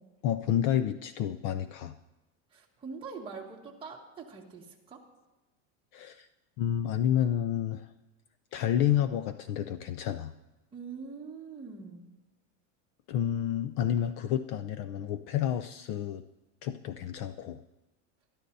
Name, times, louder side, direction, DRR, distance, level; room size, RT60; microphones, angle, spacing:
voice 1, 0.2-1.9 5.9-6.3 6.6-7.9 8.5-10.3 13.1-16.2 16.6-17.6, left 10 dB, 45° left, 11 dB, 0.5 m, -30 dB
voice 2, 2.5-5.1 10.7-12.1, right 5 dB, 15° right, -3 dB, 1.9 m, -43 dB
23.0 x 13.0 x 2.7 m, 1.1 s
supercardioid pair, 160°, 36 cm